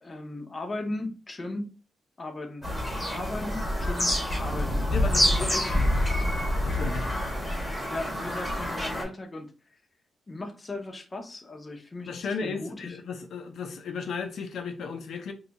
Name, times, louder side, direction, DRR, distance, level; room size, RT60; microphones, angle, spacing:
voice 1, 0.0-1.7 2.2-2.7 3.1-4.8 5.2-5.9 7.9-9.5 10.3-13.0, left 2 dB, 20° left, 0.5 m, -37 dB
Bird vocalization bird call bird song, 2.6-9.0, left 1 dB, ahead, 0.9 m, -27 dB
voice 2, 4.9-5.6 6.6-7.1 12.0-15.3, left 5 dB, 70° left, 0.5 m, -35 dB
2.7 x 2.2 x 3.9 m
wide cardioid pair, 180°, 0 cm